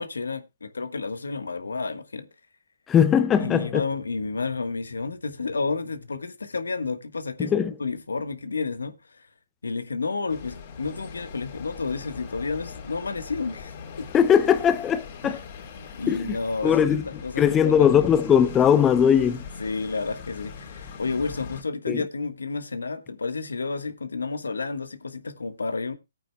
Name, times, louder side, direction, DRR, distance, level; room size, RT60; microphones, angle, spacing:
voice 1, 0.0-2.3 3.4-9.2 9.6-14.1 15.2-15.4 15.8-18.1 19.6-25.9, left 4 dB, 85° left, 1.3 m, -31 dB
voice 2, 2.9-3.8 7.4-7.7 14.1-15.4 16.1-16.4 16.6-17.0 17.4-19.4 21.9-22.0, left 8 dB, 15° left, 0.6 m, -20 dB
sound 1, 10.3-21.6, left 6 dB, 40° left, 3.6 m, -41 dB
17.0 x 8.9 x 2.2 m
hypercardioid pair, 145°, 0 cm